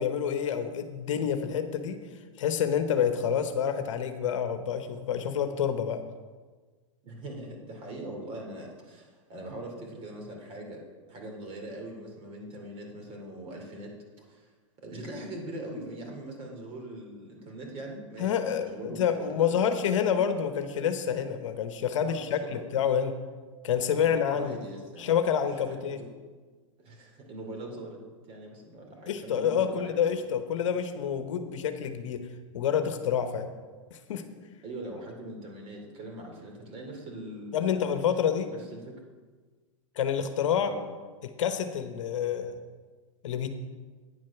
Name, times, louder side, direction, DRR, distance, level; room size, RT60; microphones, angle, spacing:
voice 1, 0.0-2.0 2.4-6.0 18.2-23.2 23.6-24.6 25.0-26.0 29.1-32.2 32.5-33.5 33.9-34.2 37.5-38.5 40.0-40.7 41.4-42.6 43.2-43.5, left 8 dB, 65° left, 8 dB, 1.0 m, -28 dB
voice 2, 7.0-10.8 11.1-13.9 14.3-14.5 14.8-19.6 22.0-22.5 23.9-25.1 25.6-26.1 26.8-28.0 28.3-30.2 34.6-37.8 38.5-38.9 40.6-40.9, right 1 dB, 35° right, 2 dB, 2.8 m, -42 dB
9.6 x 7.6 x 5.9 m, 1.4 s
hypercardioid pair, 115°, 17 cm